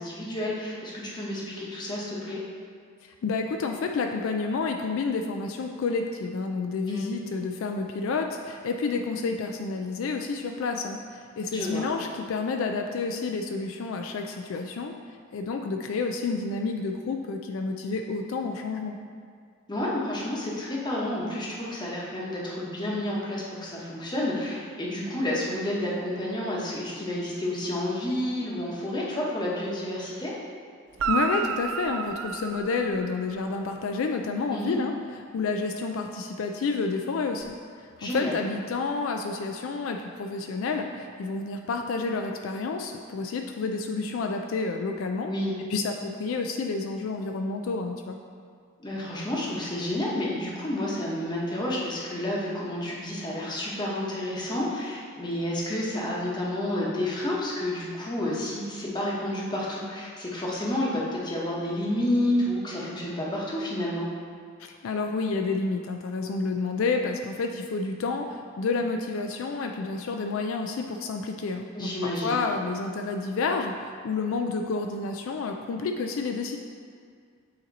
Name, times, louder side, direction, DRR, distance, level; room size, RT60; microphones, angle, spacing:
voice 1, 0.0-2.4 6.9-7.0 11.4-11.8 19.7-30.3 34.5-34.8 38.0-38.3 45.2-45.5 48.8-64.1 71.7-72.4, left 1 dB, 20° left, -5 dB, 0.9 m, -30 dB
voice 2, 3.0-14.9 15.3-19.0 31.1-34.9 35.3-45.3 45.7-48.2 64.6-76.6, left 4 dB, 70° left, 4 dB, 0.3 m, -30 dB
Guitar, 30.9-33.5 37.4-37.5, right 5 dB, 80° right, 0.3 m, -31 dB
8.5 x 2.8 x 4.0 m, 2.1 s
head